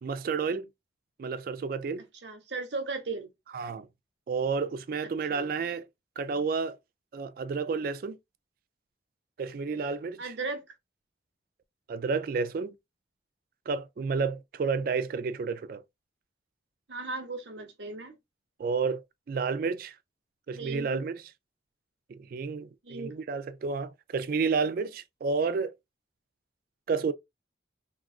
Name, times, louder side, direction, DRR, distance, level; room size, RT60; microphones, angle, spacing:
voice 1, 0.0-0.7 1.2-2.0 3.5-3.9 4.3-5.9 6.2-6.8 7.1-8.2 9.4-10.3 11.9-12.7 13.7-15.8 18.6-19.9 20.5-21.1 22.1-25.7 26.9-27.1, right 5 dB, 50° right, 0.3 m, -30 dB
voice 2, 2.2-3.3 5.3-5.5 10.2-10.6 16.9-18.1 20.5-21.1 22.8-23.2, right 3 dB, 80° right, 0.9 m, -36 dB
3.6 x 2.3 x 2.3 m
head